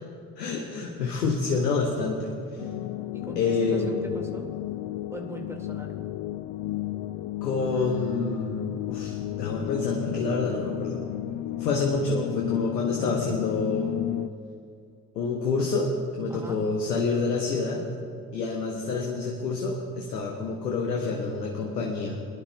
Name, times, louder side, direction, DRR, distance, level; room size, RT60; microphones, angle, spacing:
voice 1, 0.4-2.3 3.4-4.0 7.4-11.0 11.6-13.9 15.1-15.9 16.2-17.8 18.3-22.2, left 4 dB, 90° left, 0 dB, 1.1 m, -28 dB
sound 1, 2.6-14.3, left 14 dB, 55° left, 0.5 m, -33 dB
voice 2, 3.1-4.5 5.1-5.9 16.3-16.6, right 1 dB, 5° right, 2 dB, 2.0 m, -39 dB
24.0 x 11.5 x 2.3 m, 2.4 s
hypercardioid pair, 55°, 47 cm